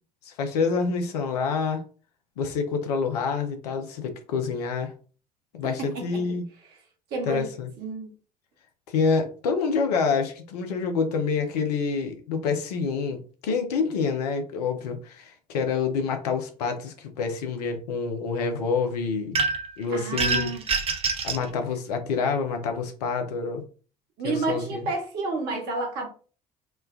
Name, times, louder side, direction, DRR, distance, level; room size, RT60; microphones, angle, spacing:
voice 1, 0.2-1.8 2.4-4.9 5.5-6.4 7.3-7.7 8.9-19.4 19.8-20.5 21.2-23.6 24.2-24.8, left 5 dB, 70° left, 0.6 m, -27 dB
voice 2, 5.6-6.0 7.1-7.5 7.8-8.1 19.9-20.6 24.2-26.1, right 3 dB, 55° right, 1.1 m, -30 dB
sound 1, 19.3-19.7 20.2-21.4, right 4 dB, 30° right, 0.5 m, -25 dB
3.2 x 2.1 x 2.3 m
figure-of-eight pair, 60°, 21 cm